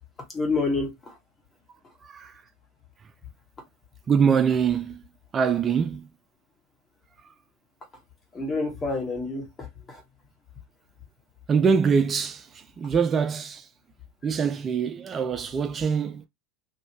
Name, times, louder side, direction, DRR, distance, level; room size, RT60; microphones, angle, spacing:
voice 1, 0.3-1.1 8.3-10.0, left 3 dB, 25° left, 1.4 m, -28 dB
voice 2, 2.0-2.4 4.1-5.0 5.3-6.1 11.5-13.7 14.2-16.2, right 6 dB, 30° right, 0.4 m, -24 dB
3.0 x 2.7 x 2.7 m
hypercardioid pair, 85°, 0 cm